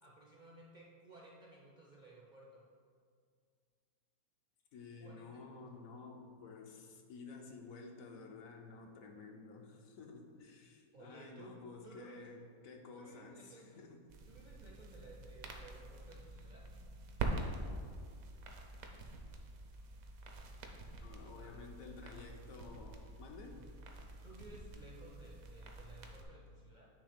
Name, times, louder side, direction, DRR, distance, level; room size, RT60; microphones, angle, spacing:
voice 1, 0.0-2.7 5.0-5.6 10.9-11.5 11.8-12.3 13.0-13.7 14.3-16.7 21.2-21.7 23.5-23.7 24.2-26.9, right 2 dB, 45° right, -3 dB, 0.6 m, -57 dB
voice 2, 4.7-14.0 21.0-23.6, left 4 dB, 70° left, 2 dB, 1.1 m, -52 dB
sound 1, 14.1-26.2, right 2 dB, 70° right, 1.1 m, -46 dB
8.8 x 3.2 x 5.0 m, 2.1 s
omnidirectional pair, 1.6 m